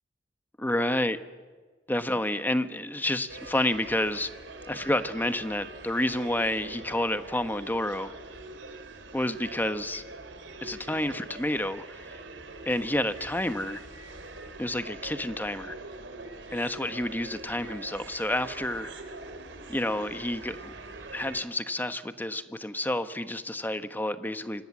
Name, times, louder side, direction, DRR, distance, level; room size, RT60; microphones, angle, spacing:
voice 1, 0.6-1.2 1.9-4.3 4.7-8.1 9.1-10.0 10.6-12.2 12.7-13.8 14.6-15.8 16.5-18.9 19.7-20.7 21.1-24.6, left 1 dB, 10° left, 10 dB, 1.1 m, -29 dB
sound 1, 3.3-21.4, right 2 dB, 90° right, 3.2 m, -44 dB
28.5 x 26.0 x 7.5 m, 1.4 s
head